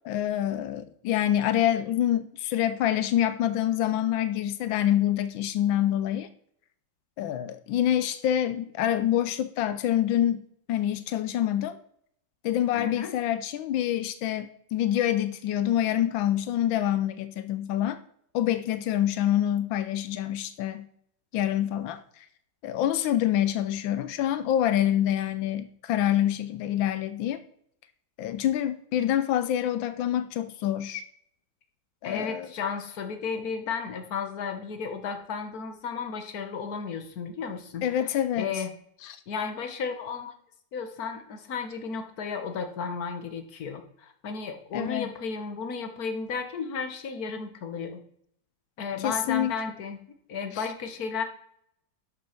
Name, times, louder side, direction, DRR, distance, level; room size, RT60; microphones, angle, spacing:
voice 1, 0.0-6.3 7.2-11.8 12.4-18.0 18.3-20.9 21.3-22.3 22.6-27.4 28.2-31.0 32.0-32.5 37.8-38.6 39.0-39.2 44.7-45.1 49.0-49.5 50.5-50.6, left 11 dB, 90° left, 1.4 m, -26 dB
voice 2, 12.7-13.1 32.0-37.8 38.3-38.7 39.3-40.3 40.7-48.0 48.8-50.0 50.3-51.2, left 5 dB, 55° left, 1.7 m, -33 dB
12.0 x 6.1 x 5.8 m
omnidirectional pair, 2.1 m